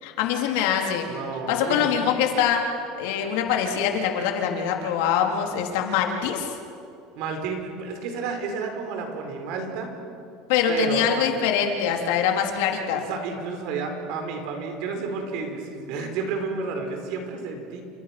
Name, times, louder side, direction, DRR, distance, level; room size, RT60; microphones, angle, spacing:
voice 1, 0.0-1.1 1.5-2.6 3.0-6.6 10.5-13.0, left 8 dB, 75° left, 2 dB, 3.7 m, -24 dB
voice 2, 1.1-1.9 7.1-9.9 10.7-11.1 12.9-17.8, right 4 dB, 55° right, 4 dB, 4.9 m, -31 dB
29.5 x 27.5 x 6.2 m, 2.5 s
cardioid pair, 160°, 0 cm